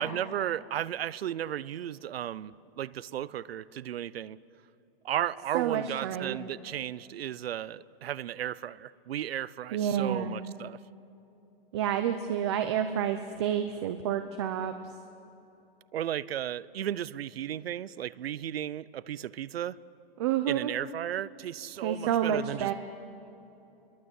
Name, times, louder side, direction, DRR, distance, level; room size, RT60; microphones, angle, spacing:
voice 1, 0.0-4.4 5.0-10.8 15.9-19.8 20.5-22.7, right 11 dB, 80° right, 20 dB, 0.8 m, -34 dB
voice 2, 5.5-6.4 9.7-10.4 11.7-14.7 20.2-20.7 21.8-22.7, right 9 dB, 30° right, 8 dB, 0.8 m, -29 dB
28.0 x 22.0 x 8.2 m, 2.9 s
hypercardioid pair, 175°, 30 cm